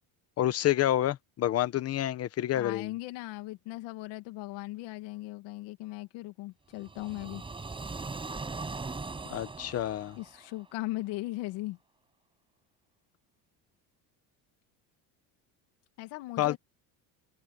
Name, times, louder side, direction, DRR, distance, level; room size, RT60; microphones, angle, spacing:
voice 1, 0.4-2.9 9.3-10.2 16.4-16.6, left 13 dB, 35° left, 1.0 m, -28 dB
voice 2, 2.5-7.4 10.2-11.8 16.0-16.6, left 19 dB, 90° left, 2.3 m, -38 dB
sound 1, 6.8-10.8, right 3 dB, 10° right, 6.5 m, -40 dB
cardioid pair, 175°, 42 cm